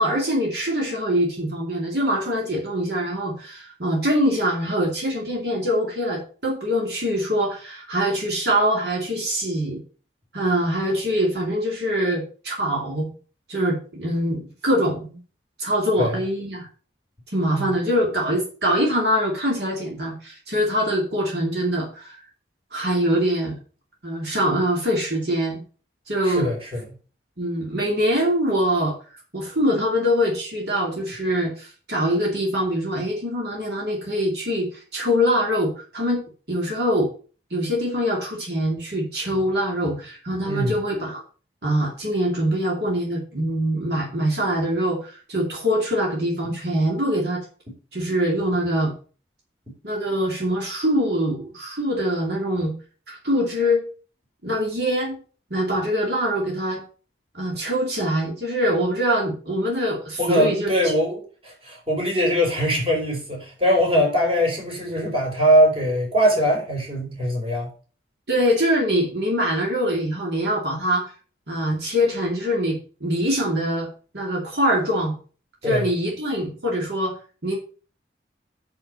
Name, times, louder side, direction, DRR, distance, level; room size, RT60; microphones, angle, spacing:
voice 1, 0.0-9.8 10.3-13.1 13.5-15.2 15.6-16.7 17.3-22.2 22.7-23.5 24.0-25.6 26.1-26.5 27.4-28.9 29.3-37.1 37.5-41.2 41.6-47.4 47.9-48.9 49.8-52.7 53.1-53.8 54.4-55.2 55.5-56.8 57.3-60.9 68.3-71.1 71.5-73.9 74.1-75.2 75.6-77.2 77.4-77.6, equal, 65° right, 2.5 m, -23 dB
voice 2, 26.2-26.8 40.5-40.8 46.4-46.5 60.2-67.7 75.6-75.9, equal, 30° right, 3.7 m, -22 dB
6.7 x 5.9 x 6.6 m
head